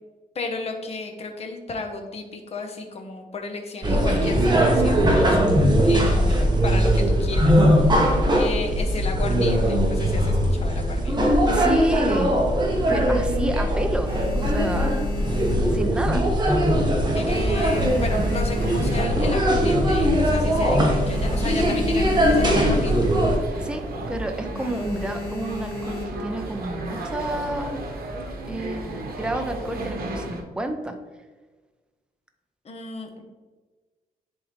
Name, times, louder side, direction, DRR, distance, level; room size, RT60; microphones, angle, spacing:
voice 1, 0.3-5.6 5.8-11.2 17.1-23.1 32.6-33.2, left 3 dB, 45° left, 3 dB, 0.9 m, -33 dB
sound 1, 3.8-23.4, equal, 30° right, 1.1 m, -20 dB
voice 2, 11.5-12.3 12.9-14.1 14.4-15.0 15.7-16.3 23.6-27.9 28.5-31.0, right 1 dB, 5° right, 5 dB, 0.5 m, -30 dB
sound 2, 12.7-13.4 13.8-16.3 16.6-17.0 17.3-19.5 20.0-20.1 20.3-20.4 20.7-22.9 23.2-23.5 23.8-24.1 24.5-26.4 27.1-27.7, left 3 dB, 75° left, 1.3 m, -35 dB
sound 3, 17.3-30.4, right 2 dB, 85° right, 0.9 m, -34 dB
10.5 x 3.7 x 3.2 m, 1.3 s
wide cardioid pair, 155°, 15 cm